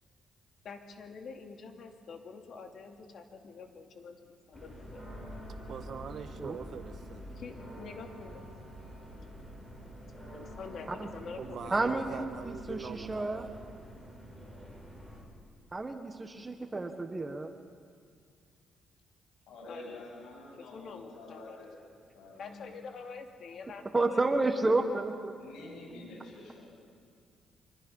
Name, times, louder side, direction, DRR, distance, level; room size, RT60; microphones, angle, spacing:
voice 1, 0.6-5.1 7.4-8.4 10.3-12.4 19.7-20.1 20.6-21.6 22.4-24.2, left 5 dB, 60° left, 2.6 m, -46 dB
sound 1, 4.5-15.2, equal, 10° left, 7.4 m, -47 dB
voice 2, 5.5-7.4 11.4-13.5, right 7 dB, 60° right, 1.3 m, -43 dB
voice 3, 11.7-13.5 15.7-17.5 23.9-25.4, right 2 dB, 20° right, 1.4 m, -31 dB
voice 4, 19.5-22.7 25.4-26.6, left 2 dB, 85° left, 7.4 m, -48 dB
24.5 x 23.5 x 5.6 m
cardioid pair, 90°, 0 cm